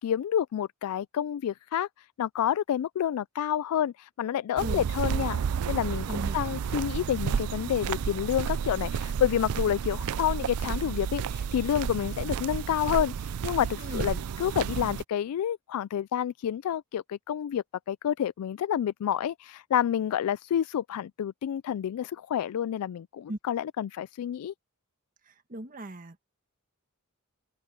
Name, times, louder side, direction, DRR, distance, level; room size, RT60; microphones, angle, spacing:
voice 1, 0.0-1.9 2.2-5.4 5.7-6.1 6.3-24.5, left 10 dB, 90° left, 0.3 m, -29 dB
voice 2, 4.5-4.8 6.1-6.4 13.8-14.1 23.3-23.4 25.2-26.2, right 1 dB, 40° right, 1.6 m, -38 dB
sound 1, 4.6-15.0, right 7 dB, 85° right, 0.4 m, -31 dB
open air
head